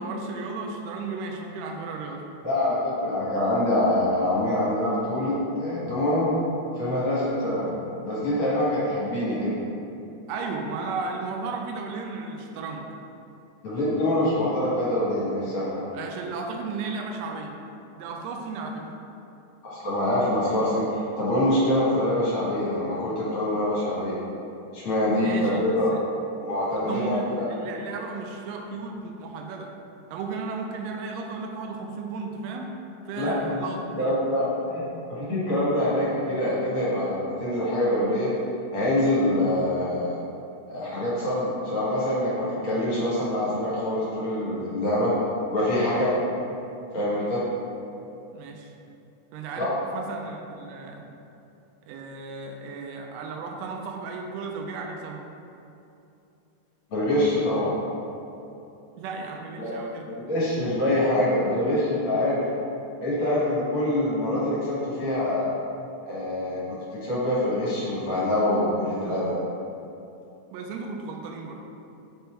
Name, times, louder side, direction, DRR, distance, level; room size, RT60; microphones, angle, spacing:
voice 1, 0.0-2.3 10.3-12.9 15.9-17.6 18.0-18.9 25.2-26.0 26.7-29.7 30.1-32.7 33.1-34.2 48.3-48.7 49.3-49.7 49.9-51.0 51.9-55.2 59.0-60.1 70.5-71.6, right 4 dB, 85° right, 2 dB, 1.5 m, -34 dB
voice 2, 2.4-6.3 6.7-7.7 8.0-9.6 13.6-15.9 19.6-24.2 24.7-25.9 26.4-27.5 33.2-33.6 33.9-38.3 38.7-40.2 40.7-45.1 45.5-46.2 46.9-47.4 49.6-49.7 56.9-57.7 59.6-59.7 60.1-62.4 63.0-65.5 66.1-66.6 67.0-69.3, left 1 dB, 50° left, -9 dB, 2.1 m, -25 dB
5.3 x 4.4 x 4.4 m, 2.7 s
omnidirectional pair, 3.5 m